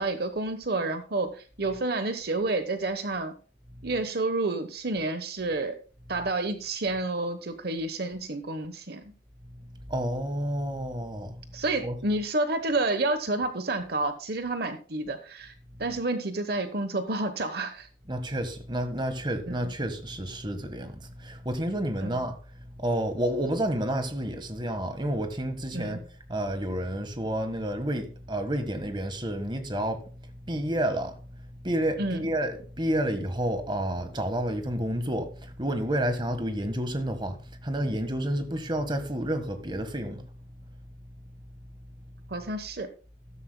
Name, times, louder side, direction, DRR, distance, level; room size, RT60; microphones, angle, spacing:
voice 1, 0.0-3.3 3.8-5.8 6.1-9.0 11.5-15.5 15.8-17.9 19.5-19.7 22.0-22.2 25.7-26.0 32.0-32.3 42.3-42.9, right 2 dB, 55° right, 1.0 m, -29 dB
voice 2, 9.9-11.4 11.8-12.0 18.1-22.4 22.8-40.2, right 1 dB, 25° right, 1.4 m, -30 dB
14.0 x 13.0 x 2.2 m
head